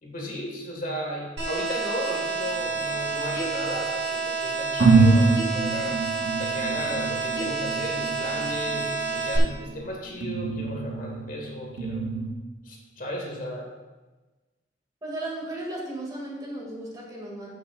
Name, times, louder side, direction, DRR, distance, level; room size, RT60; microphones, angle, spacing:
voice 1, 0.0-6.0 6.4-12.0 12.6-13.7, equal, 50° left, 0 dB, 1.9 m, -35 dB
sound 1, 1.4-9.4, right 4 dB, 90° right, 2.7 m, -29 dB
sound 2, 2.4-3.7 4.3-4.4 4.8-12.3, right 3 dB, 65° right, 1.4 m, -26 dB
voice 2, 15.0-17.5, right 1 dB, 20° right, -3 dB, 2.3 m, -35 dB
15.5 x 6.7 x 2.5 m, 1.2 s
head